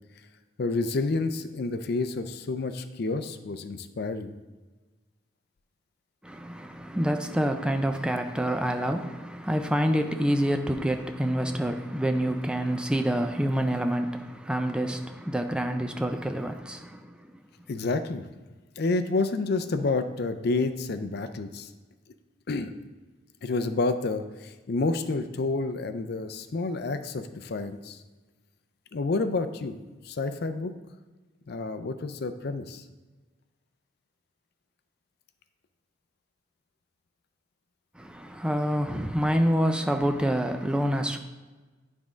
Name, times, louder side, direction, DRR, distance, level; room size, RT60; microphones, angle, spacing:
voice 1, 0.6-4.3 17.7-18.2 18.8-21.7 22.5-22.7 23.4-28.0 28.9-30.7 31.5-32.8, left 3 dB, 55° left, 0.5 m, -29 dB
voice 2, 6.2-17.2 38.0-41.2, equal, 5° right, 0.4 m, -27 dB
9.5 x 3.6 x 5.0 m
head